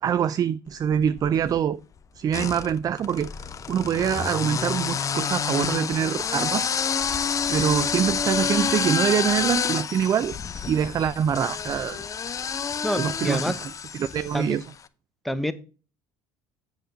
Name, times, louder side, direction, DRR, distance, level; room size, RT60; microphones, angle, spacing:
voice 1, 0.0-1.8 2.2-3.3 3.7-6.7 7.5-10.4 10.7-12.0 13.0-14.6, right 8 dB, 40° right, 0.4 m, -25 dB
sound 1, 0.9-1.6 2.3-14.6, left 6 dB, 35° left, 0.7 m, -28 dB
voice 2, 12.8-13.6 14.3-14.6 15.2-15.5, equal, ahead, 0.9 m, -27 dB
7.7 x 6.7 x 3.8 m
supercardioid pair, 80°, 10 cm